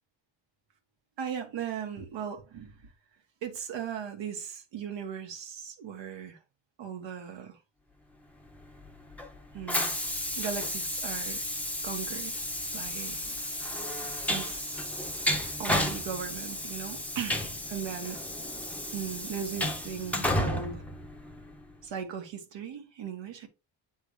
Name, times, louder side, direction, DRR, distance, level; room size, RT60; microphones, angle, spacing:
voice 1, 1.2-2.8 3.4-6.4 6.8-7.6 9.5-9.9 10.3-11.4 11.8-13.3 14.3-14.8 15.6-18.2 18.9-20.8 21.8-23.5, right 8 dB, 70° right, 1.7 m, -38 dB
Train, 8.5-21.7, left 1 dB, 5° left, 0.8 m, -33 dB
8.2 x 3.6 x 3.1 m
cardioid pair, 115°, 44 cm